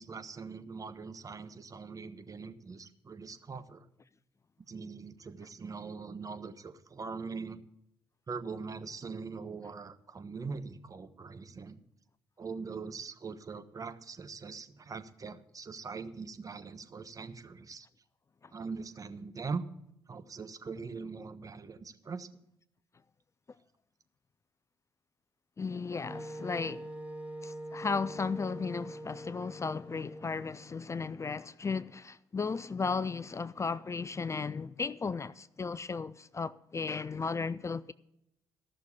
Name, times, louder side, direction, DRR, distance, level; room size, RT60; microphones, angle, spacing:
voice 1, 0.0-3.9 4.7-7.6 8.3-11.8 12.4-17.9 18.5-19.6 20.1-22.3, right 4 dB, 35° right, 1.1 m, -42 dB
voice 2, 25.6-26.9 27.4-37.9, left 4 dB, 30° left, 0.5 m, -35 dB
Wind instrument woodwind instrument, 26.1-30.7, right 1 dB, 10° right, 2.1 m, -44 dB
14.0 x 6.4 x 8.3 m
hypercardioid pair, 45°, 10 cm